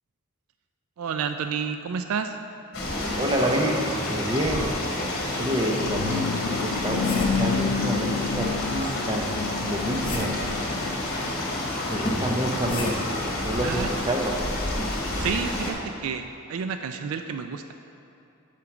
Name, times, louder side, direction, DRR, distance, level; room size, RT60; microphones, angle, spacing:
voice 1, 1.0-2.4 13.6-13.9 15.2-17.7, right 6 dB, 70° right, 7 dB, 0.3 m, -30 dB
sound 1, 2.7-15.7, left 1 dB, 45° left, 1.2 m, -29 dB
voice 2, 3.2-4.8 5.4-6.2 6.6-9.3 9.6-10.4 11.9-12.9 13.4-14.3, right 1 dB, 20° right, 0 dB, 0.7 m, -28 dB
sound 2, 5.2-5.3 5.9-7.5 9.2-10.5 12.1-13.3 14.8-15.0, left 1 dB, 25° left, 0.7 m, -33 dB
sound 3, 5.4-11.0, left 6 dB, 80° left, 0.3 m, -30 dB
7.5 x 4.5 x 6.0 m, 2.8 s
head